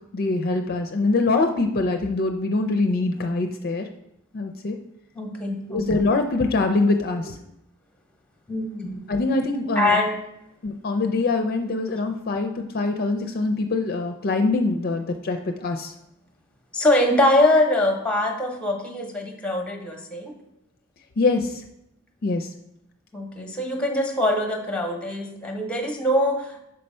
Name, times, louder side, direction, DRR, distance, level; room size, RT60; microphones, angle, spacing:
voice 1, 0.1-3.9 4.3-4.8 5.7-7.4 9.1-10.0 10.6-15.9 21.2-21.6 22.2-22.5, left 3 dB, 45° left, 5 dB, 0.4 m, -24 dB
voice 2, 5.1-6.1 8.5-9.2 9.8-10.1 16.7-20.4 23.1-26.6, left 1 dB, 5° left, 3 dB, 0.8 m, -23 dB
5.4 x 4.4 x 5.4 m, 0.82 s
head